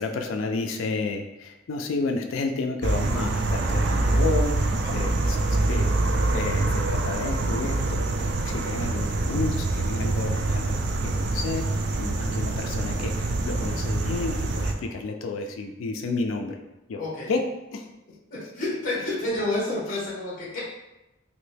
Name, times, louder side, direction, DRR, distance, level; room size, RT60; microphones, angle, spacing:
voice 1, 0.0-5.9 6.3-11.7 12.0-16.6 16.9-17.0 17.3-17.4 17.7-17.9, left 3 dB, 80° left, 5 dB, 0.4 m, -31 dB
sound 1, 2.8-14.7, right 2 dB, 55° right, 0.4 m, -25 dB
voice 2, 5.0-5.4 17.0-17.3 18.3-20.6, left 2 dB, 45° left, -7 dB, 1.1 m, -30 dB
3.1 x 2.6 x 3.3 m, 0.96 s
head